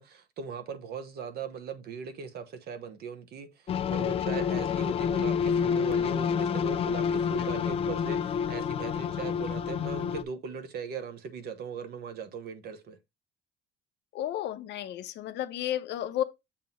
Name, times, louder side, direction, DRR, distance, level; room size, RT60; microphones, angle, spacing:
voice 1, 0.0-13.0, right 5 dB, 55° right, 1.0 m, -39 dB
sound 1, 3.7-10.2, left 7 dB, 30° left, 0.4 m, -28 dB
voice 2, 14.1-16.2, left 12 dB, 60° left, 0.8 m, -32 dB
7.6 x 2.8 x 5.3 m
cardioid pair, 170°, 20 cm